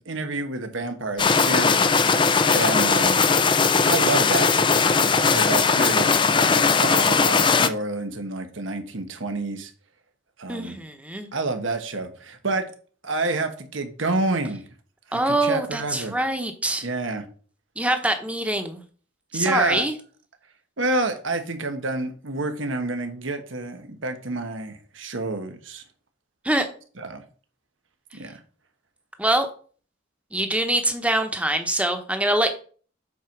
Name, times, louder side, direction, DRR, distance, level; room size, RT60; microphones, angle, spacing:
voice 1, 0.0-2.0 2.5-3.2 3.8-6.1 6.4-9.7 10.4-10.8 11.3-12.7 13.0-14.6 15.1-16.2 16.8-17.2 19.3-19.9 20.8-25.8 27.0-27.2 28.1-28.4, right 2 dB, 85° right, 1.3 m, -28 dB
sound 1, 1.2-7.7, left 5 dB, 25° left, 0.5 m, -19 dB
voice 2, 10.5-11.3 15.1-16.9 17.8-18.8 19.3-19.9 26.4-26.7 29.2-29.5 30.3-32.5, right 1 dB, 5° right, 1.0 m, -24 dB
8.0 x 4.6 x 5.9 m
head